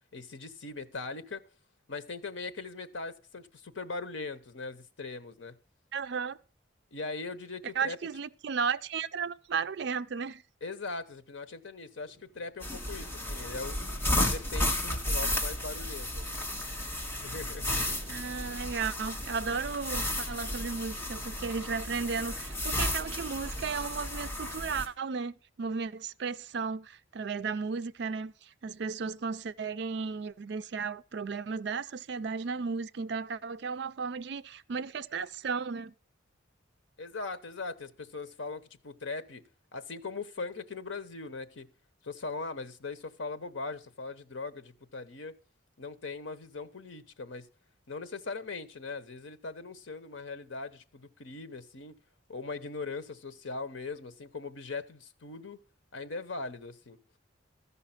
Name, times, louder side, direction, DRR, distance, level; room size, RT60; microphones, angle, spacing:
voice 1, 0.1-1.4 1.9-5.5 6.9-8.0 10.6-13.8 14.2-16.2 16.9-17.7 37.0-39.4 39.7-41.7 42.0-45.3 45.8-47.5 47.9-52.0 52.3-55.6 55.9-57.0, left 3 dB, 80° left, 0.9 m, -40 dB
voice 2, 5.9-6.4 7.8-10.4 18.1-35.9, right 5 dB, 60° right, 0.4 m, -34 dB
sound 1, 12.0-24.1, equal, 35° left, 3.1 m, -58 dB
sound 2, 12.6-24.9, left 1 dB, 10° left, 1.4 m, -33 dB
14.0 x 5.6 x 5.7 m
head